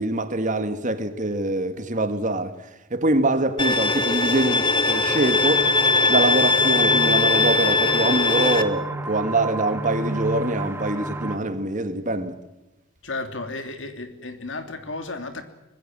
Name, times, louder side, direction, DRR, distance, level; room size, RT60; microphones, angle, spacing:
voice 1, 0.0-5.7 6.1-12.4, right 2 dB, 40° right, 1.8 m, -24 dB
Bowed string instrument, 3.6-8.6, left 3 dB, 25° left, 1.3 m, -20 dB
sound 1, 4.9-11.4, right 2 dB, 10° right, 1.8 m, -32 dB
voice 2, 13.0-15.4, left 3 dB, 65° left, 3.0 m, -33 dB
25.5 x 20.5 x 7.6 m
head